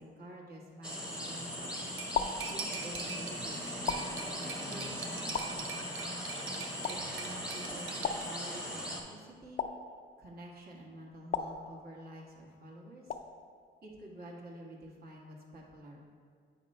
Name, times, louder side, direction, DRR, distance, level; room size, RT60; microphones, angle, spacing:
voice 1, 0.0-1.8 2.5-6.2 6.8-9.6 10.2-13.2 13.8-16.0, right 1 dB, 50° right, -2 dB, 1.4 m, -49 dB
sound 1, 0.8-9.0, equal, 5° right, 1.0 m, -39 dB
sound 2, 1.0-1.5 2.1-3.1 3.9-4.7 5.3-6.2 6.8-7.5 8.0-8.9 9.6-10.5 11.3-12.3 13.1-13.7, left 6 dB, 40° left, 0.4 m, -39 dB
Cutlery silverware, 2.0-8.2, right 6 dB, 80° right, 0.7 m, -44 dB
7.8 x 2.9 x 5.3 m, 2.1 s
cardioid pair, 90°, 20 cm